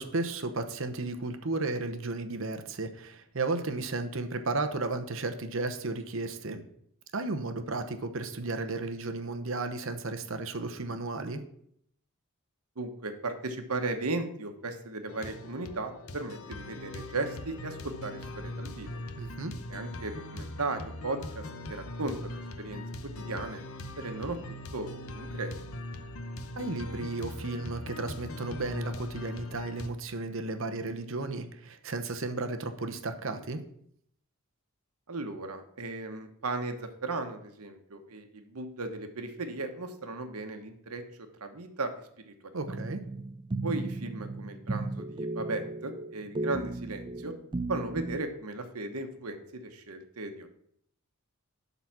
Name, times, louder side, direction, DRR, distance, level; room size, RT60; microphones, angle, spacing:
voice 1, 0.0-6.6 7.1-11.4 19.2-19.5 26.6-33.6 42.5-43.0, right 3 dB, 60° right, 7 dB, 0.8 m, -34 dB
voice 2, 12.8-19.0 19.7-22.8 23.2-23.6 24.0-25.5 35.1-42.5 43.6-47.3 47.7-50.5, right 3 dB, 85° right, 6 dB, 1.2 m, -36 dB
sound 1, 15.1-29.9, left 1 dB, 70° left, 0.8 m, -41 dB
sound 2, 42.7-48.2, right 2 dB, 20° right, 0.3 m, -35 dB
11.5 x 4.0 x 6.0 m, 0.69 s
head